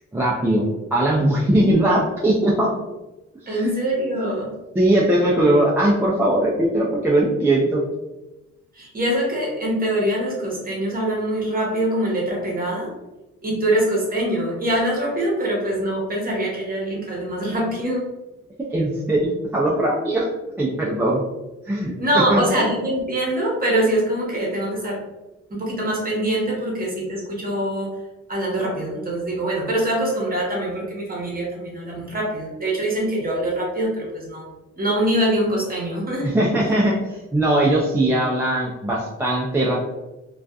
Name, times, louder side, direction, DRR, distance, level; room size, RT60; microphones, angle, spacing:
voice 1, 0.1-0.6 0.9-2.7 3.4-3.7 4.8-7.8 18.7-19.3 19.5-20.3 20.6-21.2 21.7-21.9 22.3-22.4 36.2-39.7, right 1 dB, 10° right, -5 dB, 0.4 m, -20 dB
voice 2, 3.5-4.5 8.7-12.9 13.4-18.1 22.0-25.0 25.5-27.9 28.3-34.5 34.8-36.3, right 1 dB, 30° right, -3 dB, 1.0 m, -23 dB
2.5 x 2.3 x 2.3 m, 1.0 s
cardioid pair, 90°, 30 cm